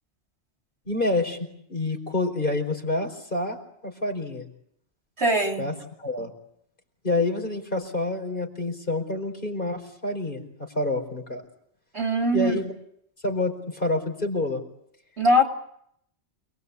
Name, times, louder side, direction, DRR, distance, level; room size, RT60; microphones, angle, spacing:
voice 1, 0.8-1.4 1.7-3.6 3.8-4.5 5.6-5.7 6.0-6.3 7.0-10.4 10.7-11.4 12.3-12.7 13.2-14.6, left 2 dB, 50° left, 4 dB, 4.9 m, -27 dB
voice 2, 5.2-5.7 11.9-12.6 15.2-15.4, equal, 75° right, 3 dB, 3.5 m, -21 dB
28.5 x 20.5 x 8.3 m, 0.71 s
omnidirectional pair, 1.1 m